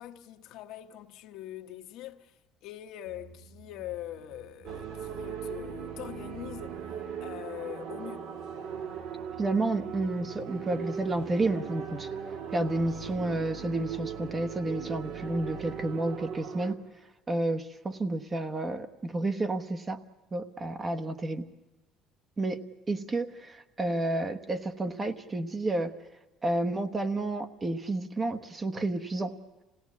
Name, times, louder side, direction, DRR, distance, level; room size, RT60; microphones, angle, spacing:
voice 1, 0.0-6.9 7.2-8.3, left 12 dB, 70° left, 1.1 m, -43 dB
sound 1, 3.0-13.1, right 5 dB, 85° right, 5.1 m, -54 dB
sound 2, 4.6-16.7, right 7 dB, 65° right, 1.7 m, -39 dB
voice 2, 9.4-12.1 12.5-16.8 17.3-20.0 20.3-21.4 22.4-22.6 22.9-25.9 26.4-29.3, right 2 dB, 25° right, 1.0 m, -30 dB
26.0 x 17.0 x 8.4 m
cardioid pair, 120°, 0 cm